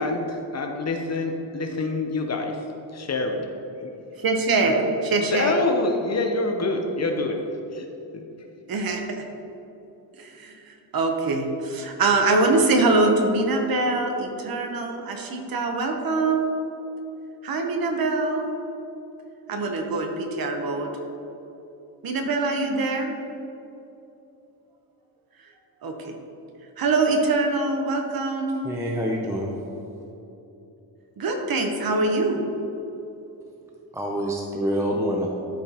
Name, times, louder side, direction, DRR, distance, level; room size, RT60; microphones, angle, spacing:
voice 1, 0.0-2.6 2.9-3.4 3.8-3.9 4.6-4.7 5.3-7.4 7.7-7.9 8.1-8.2, left 2 dB, 35° left, 3 dB, 0.7 m, -26 dB
voice 2, 4.2-5.6 8.7-9.2 10.2-16.5 17.4-18.4 19.5-20.9 22.0-23.1 25.8-26.1 26.8-28.6 31.2-32.4, right 3 dB, 50° right, 3 dB, 0.9 m, -23 dB
voice 3, 28.6-29.5 33.9-35.3, equal, 5° right, -1 dB, 0.5 m, -26 dB
12.5 x 5.1 x 2.9 m, 3.0 s
cardioid pair, 145°, 46 cm